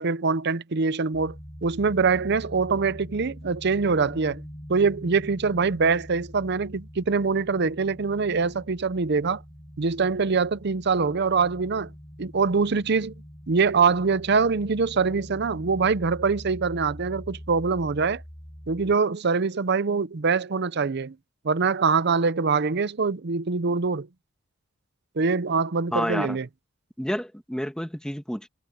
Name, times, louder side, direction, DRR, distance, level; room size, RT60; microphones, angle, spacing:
voice 1, 0.0-1.4 1.6-4.4 4.7-9.4 9.8-11.9 12.2-13.1 13.5-18.2 18.7-21.1 21.4-24.1 25.2-26.5, right 4 dB, 55° right, 0.7 m, -24 dB
sound 1, 1.1-19.0, equal, 20° left, 7.2 m, -43 dB
voice 2, 25.9-26.4 27.0-28.5, equal, 5° left, 1.8 m, -29 dB
head